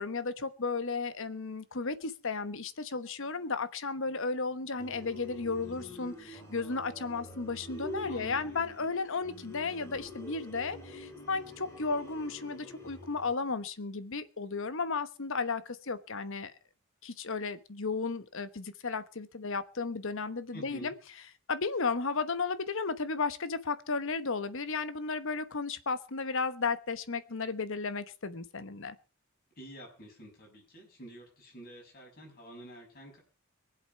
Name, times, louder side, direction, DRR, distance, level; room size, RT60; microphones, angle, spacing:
voice 1, 0.0-16.5 17.0-20.9 21.5-29.0, left 4 dB, 60° left, 13 dB, 1.1 m, -34 dB
sound 1, 4.8-13.3, left 1 dB, 10° left, 4.8 m, -46 dB
voice 2, 8.0-8.6 20.5-20.9 29.6-33.2, right 1 dB, 45° left, 1 dB, 6.8 m, -49 dB
23.0 x 8.0 x 5.6 m, 0.36 s
head